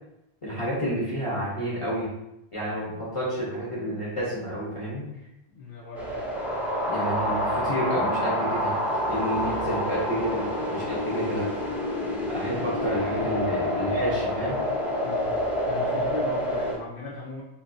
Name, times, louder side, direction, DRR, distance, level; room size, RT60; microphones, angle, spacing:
voice 1, 0.4-2.1 2.5-5.0 6.9-8.7 9.1-10.5 10.7-11.5 12.3-14.6, equal, 35° left, -7 dB, 0.8 m, -30 dB
voice 2, 5.5-6.3 9.3-10.1 10.3-10.6 15.0-15.4 15.7-17.4, left 3 dB, 65° left, -5 dB, 0.8 m, -39 dB
sound 1, 5.9-16.8, equal, ahead, 0.6 m, -28 dB
3.2 x 2.7 x 2.6 m, 0.86 s
omnidirectional pair, 1.1 m